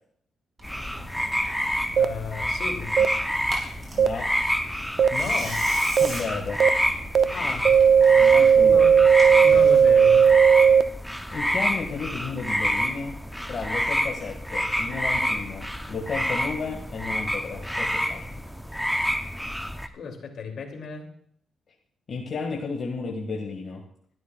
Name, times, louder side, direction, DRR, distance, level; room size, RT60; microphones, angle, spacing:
sound 1, 0.6-19.9, equal, ahead, 0.7 m, -28 dB
Tearing, 0.6-10.2, right 1 dB, 25° right, 5.1 m, -41 dB
voice 1, 1.9-3.0 5.1-5.7 7.3-7.8 8.7-9.1 9.4-10.4 19.9-21.1, left 5 dB, 60° left, 3 dB, 2.7 m, -35 dB
sound 2, 2.0-2.1 3.0-3.1 4.0-4.1 5.0-5.1 6.0-6.1 6.6-6.7 7.1-7.2 7.6-10.8, right 7 dB, 50° right, 0.6 m, -15 dB
voice 2, 3.9-4.3 4.8-4.9 6.0-6.6 7.4-7.5 8.1-8.9 9.3-9.7 10.6-10.7 11.3-13.2 13.5-18.4 22.1-23.8, left 4 dB, 40° left, -1 dB, 1.9 m, -33 dB
22.5 x 12.5 x 2.4 m, 0.62 s
cardioid pair, 150°, 0 cm